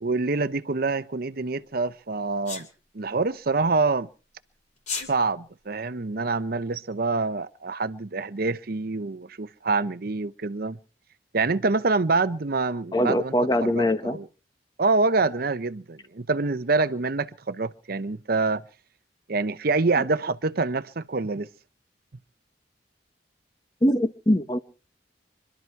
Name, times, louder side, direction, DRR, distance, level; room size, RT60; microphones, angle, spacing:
voice 1, 0.0-2.7 2.9-4.1 5.1-10.8 11.3-13.3 13.6-14.3 14.8-18.6 19.3-21.5, right 3 dB, 55° right, 0.8 m, -26 dB
Sneeze, 2.5-2.7 4.8-5.1, left 4 dB, 40° left, 2.8 m, -31 dB
voice 2, 12.9-14.2 23.8-24.6, left 1 dB, 20° left, 1.2 m, -22 dB
25.0 x 12.5 x 4.6 m
head